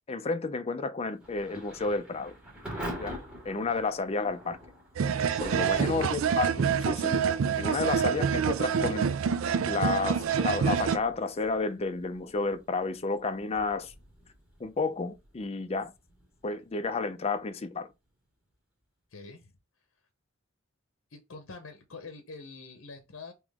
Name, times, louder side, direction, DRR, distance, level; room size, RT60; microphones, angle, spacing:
voice 1, 0.1-2.3 3.0-3.2 3.4-4.6 5.4-7.2 7.6-9.1 9.6-13.9 14.6-15.9 16.4-17.9, left 3 dB, 30° left, 0.5 m, -31 dB
Thunder / Rain, 1.2-17.9, equal, 5° right, 1.9 m, -47 dB
sound 1, 5.0-11.0, right 7 dB, 75° right, 0.4 m, -27 dB
voice 2, 5.5-6.1 19.1-19.6 21.1-23.3, left 3 dB, 70° left, 0.8 m, -45 dB
3.6 x 3.0 x 3.5 m
head